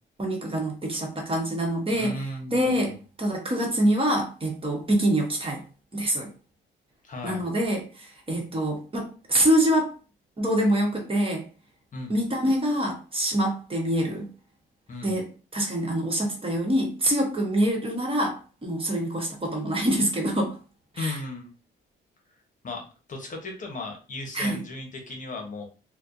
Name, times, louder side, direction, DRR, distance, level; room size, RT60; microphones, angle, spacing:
voice 1, 0.2-2.1 2.5-2.9 3.2-5.6 5.9-6.3 7.2-9.9 10.4-11.5 12.1-14.3 15.0-15.2 15.5-20.6 20.9-21.2 24.3-24.6, right 1 dB, 25° right, 1 dB, 1.2 m, -25 dB
voice 2, 1.9-2.9 7.0-7.4 11.9-12.1 14.9-15.2 20.9-21.5 22.6-25.7, left 2 dB, 40° left, 3 dB, 1.0 m, -36 dB
4.2 x 2.2 x 2.6 m, 0.35 s
cardioid pair, 90°, 20 cm